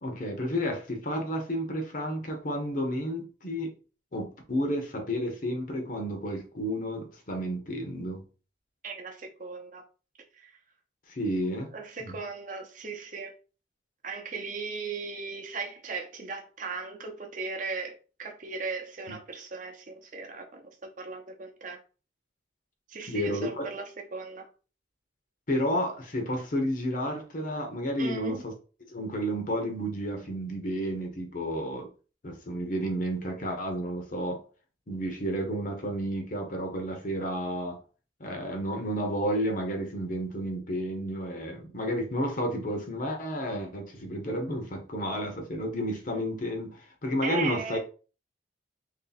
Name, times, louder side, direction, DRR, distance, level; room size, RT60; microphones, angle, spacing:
voice 1, 0.0-3.7 4.1-8.2 11.1-11.7 12.0-12.2 19.1-19.2 23.1-23.7 25.5-28.5 28.9-31.9 32.2-34.4 34.9-37.8 38.2-47.8, equal, 45° left, 0.8 m, -31 dB
voice 2, 8.8-9.8 10.3-10.6 11.7-13.3 14.0-21.8 22.9-24.5 28.0-28.4 47.2-47.8, right 4 dB, 45° right, 0.7 m, -37 dB
3.1 x 2.7 x 4.0 m
head